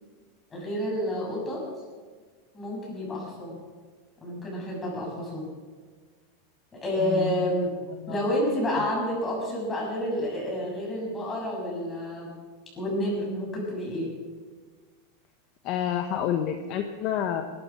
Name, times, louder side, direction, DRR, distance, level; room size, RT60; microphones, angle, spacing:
voice 1, 0.5-1.6 2.5-3.6 4.2-5.5 6.7-7.7 8.1-12.3 12.7-14.1, equal, 15° left, -3 dB, 6.8 m, -29 dB
voice 2, 7.0-7.3 7.9-8.2 15.6-17.4, left 9 dB, 40° left, 6 dB, 1.1 m, -29 dB
19.5 x 12.5 x 6.1 m, 1.5 s
supercardioid pair, 155°, 0 cm